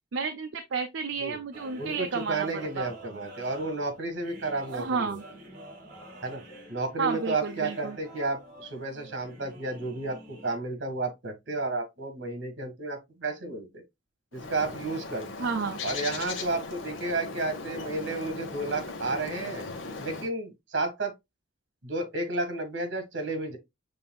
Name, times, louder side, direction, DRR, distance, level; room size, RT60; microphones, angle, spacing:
voice 1, 0.1-2.5 2.8-2.9 4.7-5.2 7.0-8.0 15.4-15.8, right 5 dB, 85° right, 0.5 m, -31 dB
sound 1, 1.5-10.6, right 1 dB, 45° right, 2.1 m, -47 dB
voice 2, 1.8-5.2 6.2-6.4 6.7-13.8 14.3-15.3 15.8-19.6 20.0-21.1 21.8-23.6, right 2 dB, 70° right, 1.6 m, -32 dB
Bird, 14.3-20.3, left 3 dB, 85° left, 0.9 m, -38 dB
7.0 x 3.3 x 2.2 m
head